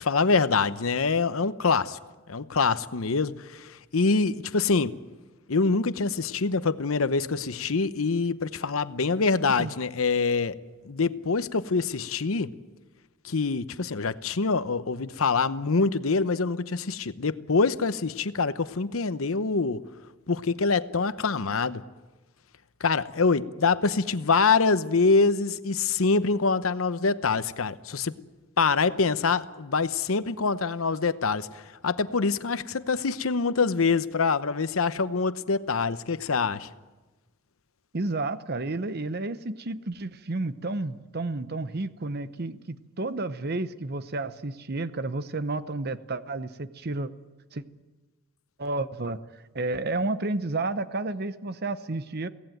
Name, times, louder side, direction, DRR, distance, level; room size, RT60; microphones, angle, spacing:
voice 1, 0.0-2.0 2.3-4.9 5.5-10.6 10.8-12.5 13.2-19.8 20.3-21.8 22.8-28.1 28.6-36.7, left 4 dB, 80° left, 13 dB, 0.8 m, -25 dB
voice 2, 37.9-47.1 47.5-47.6 48.6-49.2 49.5-52.3, right 2 dB, 50° right, 13 dB, 0.9 m, -31 dB
23.0 x 17.0 x 9.2 m, 1.2 s
head